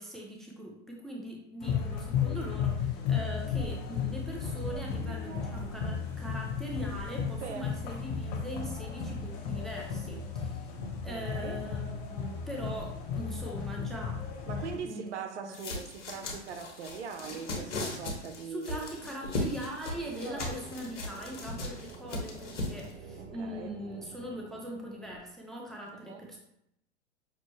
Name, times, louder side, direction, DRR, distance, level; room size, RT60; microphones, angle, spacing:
voice 1, 0.0-10.7 11.0-14.2 14.5-15.6 18.5-26.4, equal, ahead, 0.4 m, -41 dB
sound 1, 1.6-14.8, left 6 dB, 40° left, 0.9 m, -34 dB
voice 2, 7.4-7.8 10.8-11.6 14.5-18.9 20.2-20.5 23.2-23.7 25.9-26.3, right 6 dB, 75° right, 0.7 m, -42 dB
sound 2, 15.5-22.9, left 2 dB, 80° left, 1.3 m, -37 dB
sound 3, 19.8-25.2, right 3 dB, 30° right, 0.7 m, -49 dB
6.0 x 2.1 x 3.0 m
hypercardioid pair, 110°, 35 cm